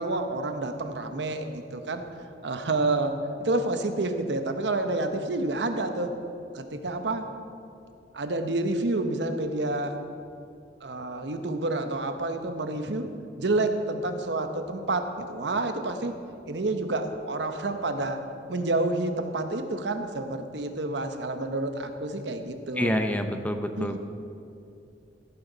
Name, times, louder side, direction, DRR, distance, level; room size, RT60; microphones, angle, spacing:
voice 1, 0.0-2.0 2.4-3.1 3.4-6.1 6.5-7.3 8.1-10.0 10.8-13.1 13.4-16.1 16.5-18.2 18.5-22.9 23.8-24.0, right 2 dB, 75° right, 7 dB, 0.9 m, -29 dB
voice 2, 22.8-24.0, equal, 10° left, 6 dB, 0.6 m, -27 dB
16.0 x 9.5 x 4.0 m, 2.6 s
head